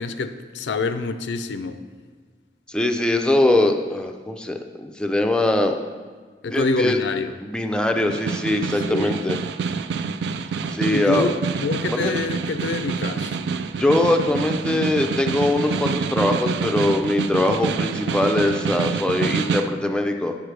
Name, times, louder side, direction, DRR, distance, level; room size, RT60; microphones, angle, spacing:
voice 1, 0.0-1.8 6.4-7.4 8.9-9.2 10.9-11.4 11.6-13.4, left 4 dB, 90° left, 10 dB, 0.4 m, -26 dB
voice 2, 2.7-5.8 6.5-7.0 7.4-9.4 10.7-11.3 11.9-12.1 13.8-20.4, left 1 dB, 5° left, 4 dB, 0.4 m, -22 dB
Snare drum, 7.9-19.8, right 5 dB, 75° right, 0.3 m, -27 dB
8.5 x 6.1 x 3.3 m, 1.5 s
head